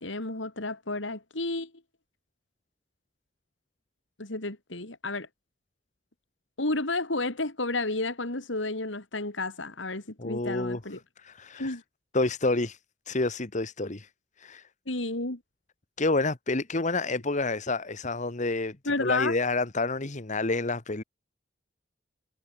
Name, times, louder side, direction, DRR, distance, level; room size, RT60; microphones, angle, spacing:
voice 1, 0.0-1.7 4.2-5.3 6.6-11.0 11.6-11.8 14.9-15.4 18.9-19.4, left 2 dB, 90° left, 3.4 m, -31 dB
voice 2, 10.2-10.8 11.2-11.7 12.1-12.8 13.1-14.1 14.4-14.6 16.0-21.0, left 2 dB, 40° left, 1.5 m, -29 dB
head